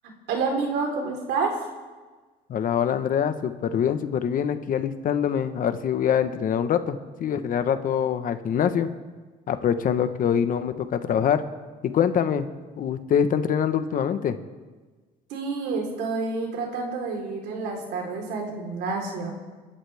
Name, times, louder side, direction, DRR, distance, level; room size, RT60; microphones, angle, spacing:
voice 1, 0.3-1.6 15.3-19.3, right 4 dB, 85° right, 1 dB, 4.0 m, -28 dB
voice 2, 2.5-8.9 9.5-11.4 11.8-12.5 12.8-14.4, left 8 dB, 55° left, 9 dB, 1.2 m, -24 dB
29.0 x 13.0 x 3.5 m, 1.3 s
cardioid pair, 110°, 17 cm